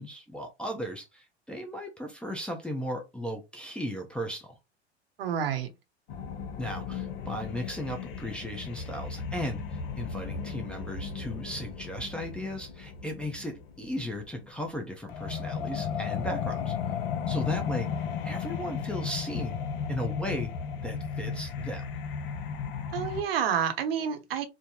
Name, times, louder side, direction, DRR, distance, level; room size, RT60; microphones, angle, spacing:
voice 1, 0.0-4.6 6.6-16.7 17.3-17.9 18.2-19.6 19.9-20.5 20.8-21.8, equal, 5° left, 0.5 m, -36 dB
voice 2, 5.2-5.7 22.9-24.5, right 8 dB, 60° right, 0.8 m, -29 dB
sound 1, 6.1-23.2, left 6 dB, 55° left, 0.6 m, -35 dB
3.2 x 2.0 x 2.8 m
figure-of-eight pair, 80°, 33 cm